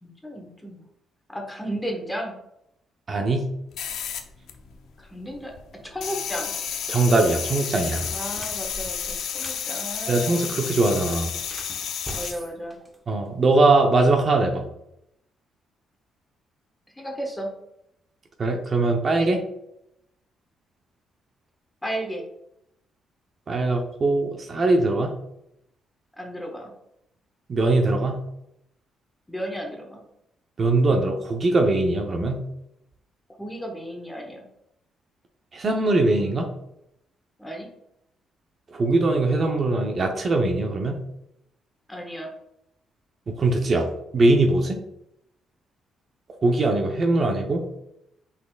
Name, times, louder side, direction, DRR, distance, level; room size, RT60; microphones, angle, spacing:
voice 1, 0.0-0.8 1.3-2.3 5.0-5.5 5.8-6.5 8.1-10.4 12.1-12.8 16.9-17.5 21.8-22.2 26.1-26.7 29.3-30.0 33.4-34.5 37.4-37.7 41.9-42.3, equal, 10° left, 1 dB, 1.2 m, -34 dB
voice 2, 3.1-3.5 6.9-8.1 10.1-11.3 13.1-14.6 18.4-19.4 23.5-25.1 27.5-28.2 30.6-32.4 35.5-36.5 38.7-41.0 43.3-44.8 46.4-47.7, right 2 dB, 45° right, 3 dB, 0.7 m, -21 dB
sound 1, 3.7-5.0 5.3-12.3, left 8 dB, 75° left, 0.6 m, -31 dB
sound 2, 8.0-9.7 11.4-13.4, equal, 10° right, 0.8 m, -41 dB
5.6 x 4.1 x 2.3 m, 0.81 s
cardioid pair, 90°, 0 cm